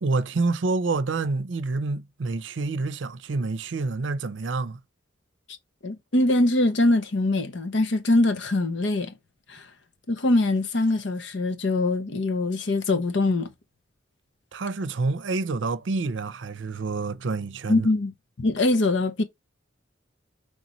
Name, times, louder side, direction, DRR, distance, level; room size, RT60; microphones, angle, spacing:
voice 1, 0.0-4.8 14.5-17.9, right 3 dB, 75° right, 0.6 m, -28 dB
voice 2, 5.8-9.1 9.5-9.7 10.1-13.5 17.7-18.1 18.4-19.2, left 2 dB, 70° left, 0.8 m, -23 dB
5.2 x 3.3 x 3.1 m
head